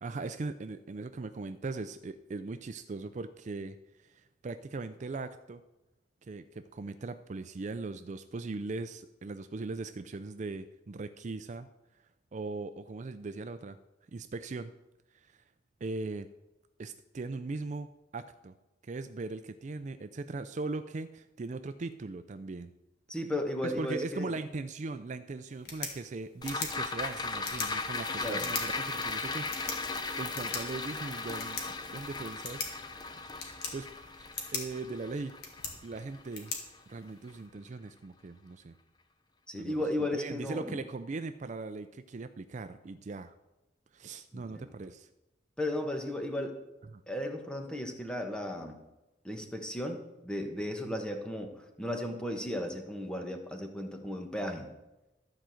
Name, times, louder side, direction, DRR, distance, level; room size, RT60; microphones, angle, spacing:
voice 1, 0.0-3.8 4.0-5.6 6.2-11.7 12.3-13.8 14.1-14.7 15.1-15.4 15.8-16.3 16.8-18.6 18.8-22.7 23.6-29.8 30.2-32.7 33.4-35.4 35.8-36.6 36.9-38.7 39.5-39.8 40.1-43.3 43.9-45.1 46.9-47.0 50.8-51.0, right 3 dB, 40° right, 10 dB, 0.4 m, -39 dB
voice 2, 23.1-24.3 28.2-28.5 39.5-40.8 44.3-44.7 45.6-46.5 47.1-48.8 49.2-54.7, left 1 dB, 5° left, 4 dB, 1.3 m, -35 dB
sound 1, 25.5-37.5, left 5 dB, 65° left, 2.0 m, -43 dB
sound 2, 26.4-36.9 37.3-37.4, left 3 dB, 25° left, 0.8 m, -37 dB
13.0 x 5.0 x 7.6 m, 0.98 s
head